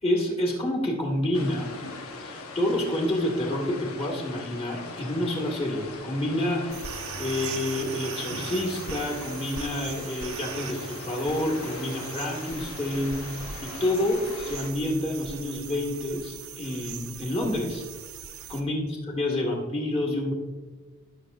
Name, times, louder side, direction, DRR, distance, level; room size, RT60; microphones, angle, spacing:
voice 1, 0.0-1.7 2.2-6.9 7.2-10.8 11.1-13.3 13.6-17.8 18.5-20.3, left 1 dB, 30° left, -1 dB, 1.7 m, -28 dB
sound 1, 1.3-14.7, left 3 dB, 85° left, 1.1 m, -40 dB
sound 2, 6.7-18.6, right 6 dB, 80° right, 0.9 m, -40 dB
16.0 x 6.8 x 2.5 m, 1.3 s
head